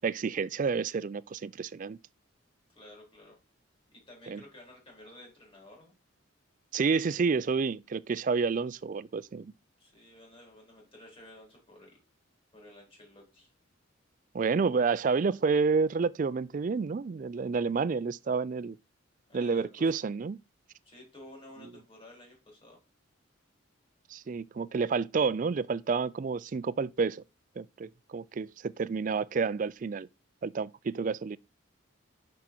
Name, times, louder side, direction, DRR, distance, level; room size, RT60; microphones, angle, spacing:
voice 1, 0.0-2.0 4.3-4.4 6.7-9.5 14.3-18.8 19.3-20.4 24.1-27.2 27.6-30.1 30.4-31.4, right 5 dB, 40° right, 0.3 m, -29 dB
voice 2, 2.7-3.4 3.9-5.9 9.8-12.0 12.5-13.5 19.3-19.9 20.8-22.8, left 1 dB, 25° left, 3.7 m, -52 dB
6.3 x 5.7 x 4.4 m
head